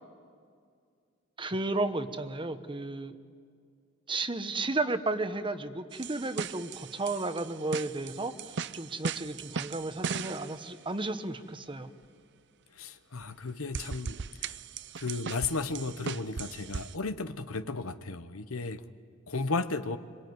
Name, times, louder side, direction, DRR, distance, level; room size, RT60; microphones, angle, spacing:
voice 1, 1.4-3.1 4.1-8.3 8.7-11.9, right 2 dB, 25° right, 10 dB, 1.1 m, -33 dB
sound 1, 5.9-10.7 13.2-13.3 13.7-16.9, right 6 dB, 55° right, 0.6 m, -38 dB
voice 2, 12.8-14.5 15.0-18.8 19.3-20.0, left 3 dB, 90° left, 11 dB, 1.1 m, -34 dB
26.0 x 24.0 x 9.5 m, 2.2 s
head